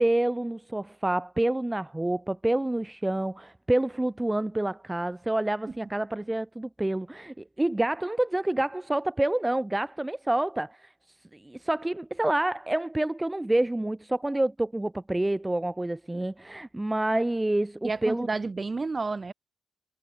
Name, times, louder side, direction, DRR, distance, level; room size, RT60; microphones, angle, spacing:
voice 1, 0.0-10.9 11.3-18.3, right 1 dB, 10° right, 0.5 m, -28 dB
voice 2, 17.8-19.3, right 3 dB, 30° right, 2.0 m, -30 dB
cardioid pair, 80°, 0 cm